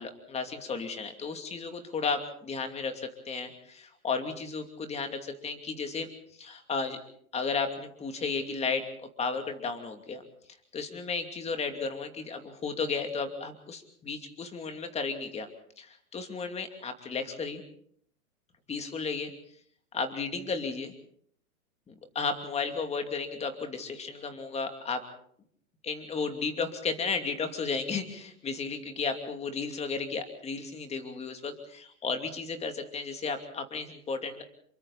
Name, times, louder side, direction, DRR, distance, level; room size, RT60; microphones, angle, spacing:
voice 1, 0.0-6.1 6.4-7.0 7.3-10.2 10.7-15.5 15.8-17.6 18.7-19.3 19.9-20.9 21.9-25.0 25.8-34.4, left 4 dB, 15° left, 6 dB, 2.7 m, -34 dB
28.5 x 23.5 x 4.2 m, 0.64 s
hypercardioid pair, 135°, 45 cm